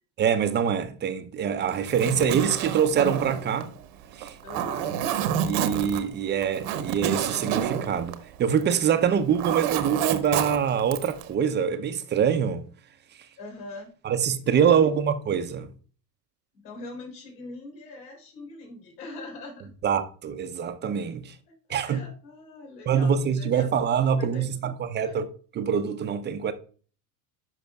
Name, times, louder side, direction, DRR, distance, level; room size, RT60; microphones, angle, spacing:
voice 1, 0.2-3.7 4.2-4.4 5.4-12.7 14.0-15.7 19.8-21.3 21.7-22.0 22.9-25.3 25.5-26.5, right 7 dB, 20° right, 0.6 m, -24 dB
Zipper (clothing), 1.7-8.9 9.1-11.3, right 9 dB, 55° right, 1.0 m, -29 dB
voice 2, 4.4-5.0 8.9-9.1 13.4-13.9 14.5-14.8 16.5-19.7 21.8-23.7 24.2-24.7 25.0-25.2, left 2 dB, 75° left, 3.8 m, -42 dB
10.5 x 5.5 x 2.3 m
hypercardioid pair, 110°, 49 cm